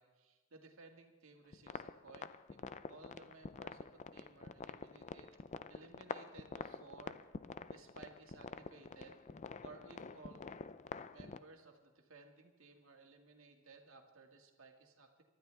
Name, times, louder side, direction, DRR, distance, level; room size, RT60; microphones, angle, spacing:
voice 1, 0.0-2.6 2.9-5.3 5.7-7.2 7.7-9.2 9.6-10.5 11.1-15.2, right 3 dB, 70° right, 2 dB, 2.1 m, -58 dB
sound 1, 1.5-11.4, left 4 dB, 35° left, 0.4 m, -48 dB
24.0 x 12.5 x 3.5 m, 1.3 s
head